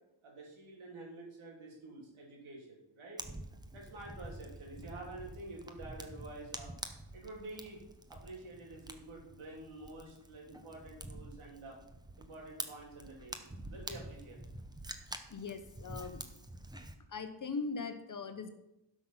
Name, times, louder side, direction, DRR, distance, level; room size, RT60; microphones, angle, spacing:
voice 1, 0.2-3.2 3.7-6.7 7.1-7.8 8.1-11.8 12.2-14.4, right 2 dB, 90° right, -1 dB, 3.4 m, -49 dB
Fire, 3.2-16.9, right 1 dB, 10° right, 0.8 m, -47 dB
voice 2, 15.3-16.4 17.1-18.5, left 4 dB, 40° left, 8 dB, 1.1 m, -40 dB
12.0 x 6.1 x 5.7 m, 0.89 s
wide cardioid pair, 130°, 48 cm